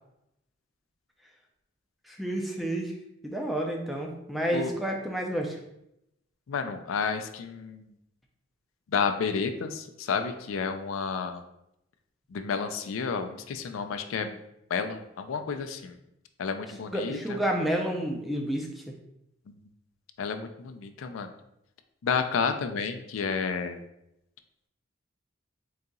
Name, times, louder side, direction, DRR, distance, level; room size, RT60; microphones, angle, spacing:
voice 1, 2.1-2.9 3.2-5.6 16.9-18.8, right 1 dB, ahead, 0 dB, 0.4 m, -30 dB
voice 2, 6.5-7.9 8.9-11.4 12.3-14.4 14.7-16.0 16.4-17.4 19.5-19.6 20.2-21.3 22.0-23.8, left 5 dB, 90° left, 7 dB, 0.4 m, -31 dB
3.9 x 2.8 x 3.6 m, 0.82 s
head